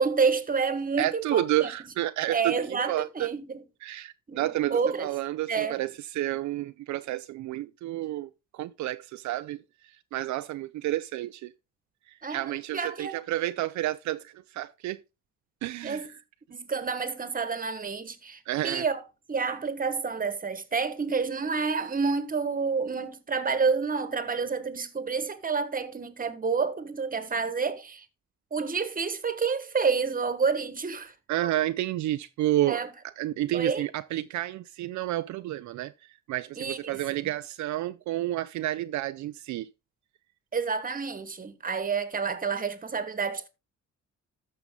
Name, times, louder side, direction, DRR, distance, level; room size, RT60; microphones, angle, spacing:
voice 1, 0.0-1.7 2.3-3.6 4.3-5.1 5.5-5.8 12.2-12.4 12.7-13.2 15.8-16.1 16.5-19.0 19.3-28.0 28.5-31.1 32.7-32.9 33.5-33.8 36.6-37.3 40.5-43.5, right 5 dB, 30° right, 1.4 m, -29 dB
voice 2, 1.0-2.6 2.9-3.3 3.8-11.5 12.1-15.0 15.6-16.1 18.5-18.8 31.3-32.8 33.2-39.7, right 15 dB, 70° right, 0.5 m, -30 dB
13.0 x 5.6 x 3.7 m
cardioid pair, 90°, 30 cm